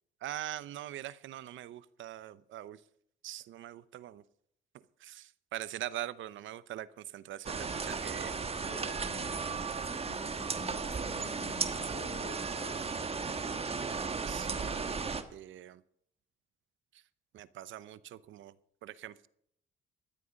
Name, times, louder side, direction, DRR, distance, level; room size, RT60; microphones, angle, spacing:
voice 1, 0.2-2.8 3.2-4.2 5.0-9.0 14.3-15.0 15.3-15.8 17.3-18.5 18.8-19.3, right 13 dB, 75° right, 0.8 m, -43 dB
sound 1, 7.5-15.2, right 4 dB, 30° right, 1.4 m, -35 dB
voice 2, 8.7-12.9, left 9 dB, 60° left, 1.2 m, -51 dB
13.5 x 11.5 x 5.2 m
cardioid pair, 90°, 20 cm